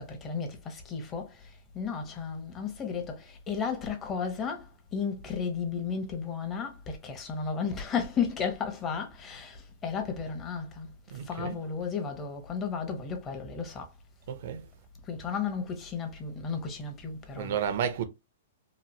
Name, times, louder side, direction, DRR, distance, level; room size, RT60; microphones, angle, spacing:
voice 1, 0.0-1.4 1.7-10.9 11.3-13.9 15.1-17.6, left 6 dB, 25° left, 1.0 m, -34 dB
voice 2, 11.1-11.6 14.3-14.6 17.3-18.0, right 8 dB, 60° right, 0.7 m, -32 dB
3.1 x 2.5 x 2.6 m
hypercardioid pair, 140°, 0 cm